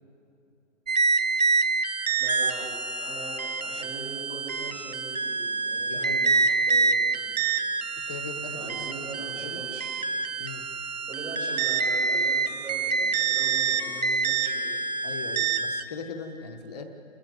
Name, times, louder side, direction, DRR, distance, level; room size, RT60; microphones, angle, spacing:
sound 1, 0.9-15.8, right 4 dB, 35° right, 0.6 m, -27 dB
voice 1, 2.2-2.7 3.0-7.3 8.5-9.9 11.1-14.8, right 2 dB, 75° right, -7 dB, 7.6 m, -41 dB
voice 2, 5.9-6.3 8.1-9.6 10.4-10.6 15.0-16.9, left 4 dB, 10° left, -8 dB, 0.5 m, -39 dB
28.5 x 15.0 x 8.0 m, 2.9 s
hypercardioid pair, 160°, 39 cm